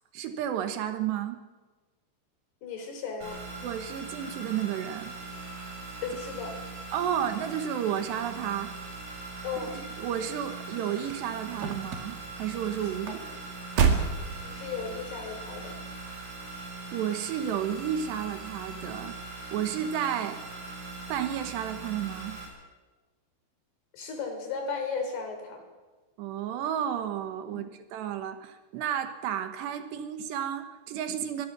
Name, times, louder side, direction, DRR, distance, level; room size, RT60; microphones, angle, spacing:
voice 1, 0.1-1.4 3.6-5.1 6.9-8.7 9.6-9.7 10.0-13.2 16.9-19.2 19.5-20.4 21.1-22.4 26.2-31.5, right 9 dB, 80° right, 8 dB, 3.5 m, -32 dB
voice 2, 2.6-3.4 6.0-6.6 9.4-9.7 14.4-15.8 23.9-25.6 27.5-27.6, left 5 dB, 70° left, 5 dB, 5.6 m, -35 dB
sound 1, 3.2-22.5, right 3 dB, 45° right, 6.7 m, -41 dB
sound 2, 10.4-15.1 15.8-16.2 16.5-16.6, right 6 dB, 65° right, 3.6 m, -30 dB
24.0 x 20.0 x 6.2 m, 1.3 s
omnidirectional pair, 4.8 m